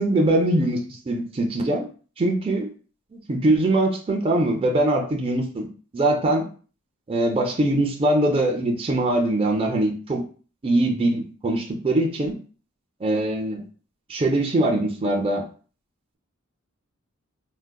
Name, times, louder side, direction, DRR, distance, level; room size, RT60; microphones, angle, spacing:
voice 1, 0.0-1.8 2.2-2.7 3.1-5.7 5.9-6.5 7.1-10.2 10.6-12.3 13.0-13.6 14.1-15.4, right 1 dB, 25° right, 1 dB, 0.4 m, -22 dB
3.6 x 2.1 x 2.2 m, 0.39 s
head